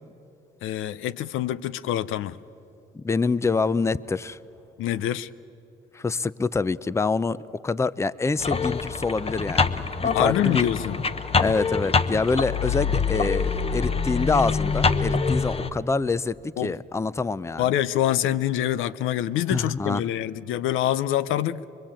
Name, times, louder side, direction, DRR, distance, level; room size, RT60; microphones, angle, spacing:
voice 1, 0.6-2.4 4.8-5.3 10.1-11.0 16.6-16.7 17.6-21.6, left 12 dB, 90° left, 17 dB, 0.6 m, -25 dB
voice 2, 2.9-4.4 5.9-10.7 11.4-17.7 19.5-20.0, left 4 dB, 15° left, 19 dB, 0.5 m, -26 dB
sound 1, 8.4-15.7, left 5 dB, 30° left, 0.9 m, -25 dB
24.0 x 23.5 x 8.8 m, 2.9 s
cardioid pair, 90°, 20 cm